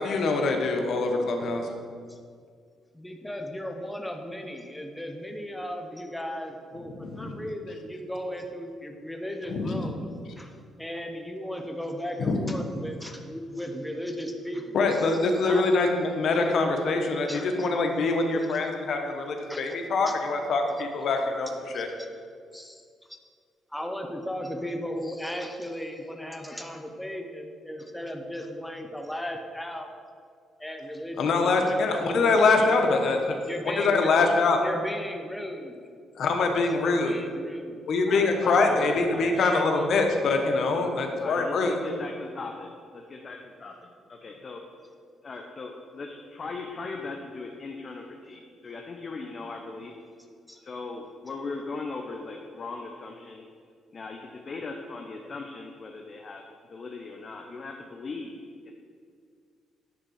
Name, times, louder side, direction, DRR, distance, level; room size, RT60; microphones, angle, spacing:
voice 1, 0.0-1.7 7.0-7.4 9.5-9.9 12.2-12.6 14.7-21.5 21.7-21.9 31.2-33.4 33.6-34.6 36.2-37.1 37.9-41.7, left 3 dB, 65° left, 3 dB, 1.0 m, -24 dB
voice 2, 2.9-10.1 10.4-10.5 10.8-15.7 17.3-17.7 18.5-18.6 19.5-19.8 20.1-20.2 21.7-22.1 22.5-22.8 23.7-29.9 30.6-32.6 33.4-34.1 34.5-35.8 36.7-37.8 39.2-39.9 50.5-50.6, equal, 5° left, 3 dB, 0.8 m, -36 dB
voice 3, 38.1-39.5 41.2-44.6 45.2-50.0 50.6-53.4 53.9-56.4 56.7-58.7, left 3 dB, 40° left, 2 dB, 0.7 m, -39 dB
9.8 x 3.7 x 6.3 m, 2.1 s
cardioid pair, 90°, 0 cm